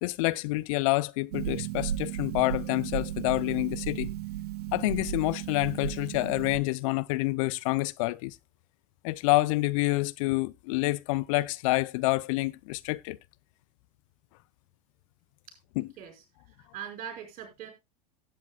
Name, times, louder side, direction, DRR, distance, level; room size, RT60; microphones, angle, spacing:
voice 1, 0.0-4.1 4.7-8.4 9.0-13.2 15.8-15.9, left 21 dB, 55° left, 0.5 m, -28 dB
Harp, 1.3-6.6, right 11 dB, 70° right, 0.7 m, -35 dB
voice 2, 16.0-17.7, right 8 dB, 45° right, 5.5 m, -42 dB
17.5 x 8.4 x 2.3 m
hypercardioid pair, 85°, 20 cm